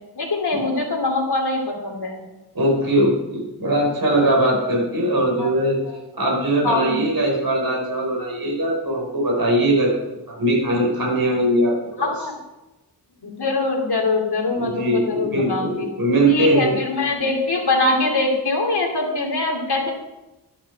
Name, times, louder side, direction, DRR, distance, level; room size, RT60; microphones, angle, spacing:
voice 1, 0.2-2.1 6.6-7.0 12.0-12.3 13.2-15.6 16.3-19.9, left 3 dB, 75° left, 1 dB, 2.8 m, -22 dB
voice 2, 2.5-5.8 6.1-10.0 10.3-12.3 14.5-16.8, right 1 dB, 60° right, -2 dB, 4.8 m, -21 dB
12.0 x 11.0 x 4.6 m, 1.0 s
wide cardioid pair, 70°, 39 cm